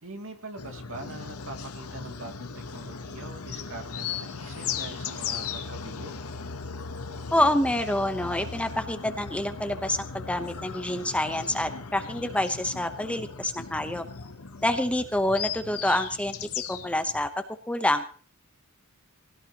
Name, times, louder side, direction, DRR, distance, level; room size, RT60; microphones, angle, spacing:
voice 1, 0.0-6.1, right 2 dB, 65° right, 3 dB, 2.6 m, -42 dB
sound 1, 0.6-17.3, left 6 dB, 85° left, 1.1 m, -37 dB
voice 2, 7.3-14.0 14.6-16.3 16.7-17.3 17.7-18.1, left 1 dB, 5° left, 8 dB, 0.9 m, -27 dB
19.5 x 17.5 x 3.0 m, 0.43 s
head